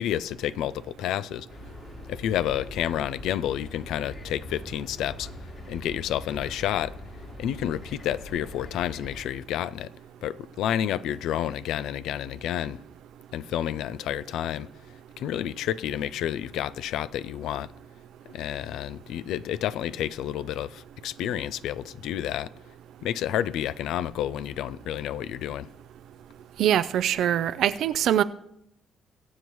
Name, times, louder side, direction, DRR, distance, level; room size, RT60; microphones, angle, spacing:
voice 1, 0.0-1.5 2.1-5.3 5.7-6.9 7.4-9.9 10.2-12.8 13.3-14.7 15.2-17.7 18.3-22.5 23.0-25.7, left 11 dB, 85° left, 0.4 m, -30 dB
sound 1, 1.5-9.2, left 1 dB, 50° left, 2.8 m, -42 dB
voice 2, 26.6-28.2, right 11 dB, 75° right, 0.5 m, -23 dB
22.5 x 8.1 x 3.1 m
cardioid pair, 90°, 0 cm